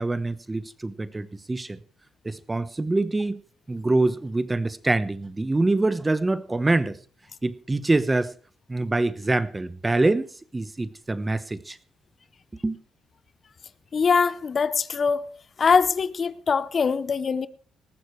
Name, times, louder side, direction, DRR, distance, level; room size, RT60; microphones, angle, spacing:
voice 1, 0.0-1.8 2.2-3.4 3.7-7.0 7.4-8.3 8.7-11.8 12.6-12.8, right 2 dB, 20° right, 1.0 m, -25 dB
voice 2, 13.9-15.3 15.6-17.5, left 5 dB, 45° left, 0.7 m, -22 dB
19.5 x 14.5 x 3.2 m
cardioid pair, 90°, 0 cm